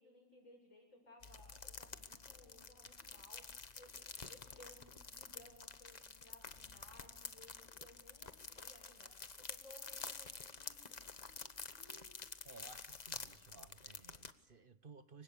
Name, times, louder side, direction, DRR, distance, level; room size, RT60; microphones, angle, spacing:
voice 1, 0.0-12.2, left 1 dB, 85° left, 1 dB, 8.3 m, -62 dB
sound 1, 1.2-14.3, left 4 dB, 35° left, 1.1 m, -50 dB
sound 2, 3.1-9.1 9.5-9.6, left 2 dB, 60° left, 2.8 m, -71 dB
voice 2, 12.4-15.2, right 4 dB, 45° right, 12 dB, 1.2 m, -58 dB
29.5 x 24.0 x 6.9 m, 1.0 s
omnidirectional pair, 1.3 m